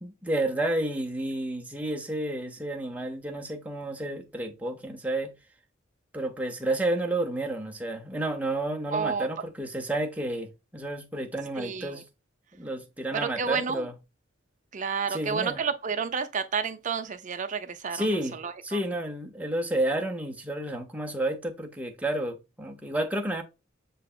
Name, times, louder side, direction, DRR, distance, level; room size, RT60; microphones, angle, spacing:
voice 1, 0.0-5.3 6.1-12.0 12.6-13.9 15.1-15.6 17.9-18.3 18.6-23.4, right 1 dB, 5° right, 0.7 m, -31 dB
voice 2, 8.9-9.3 11.6-12.0 13.1-13.9 14.7-18.8, right 6 dB, 40° right, 0.5 m, -31 dB
6.7 x 3.2 x 2.4 m
head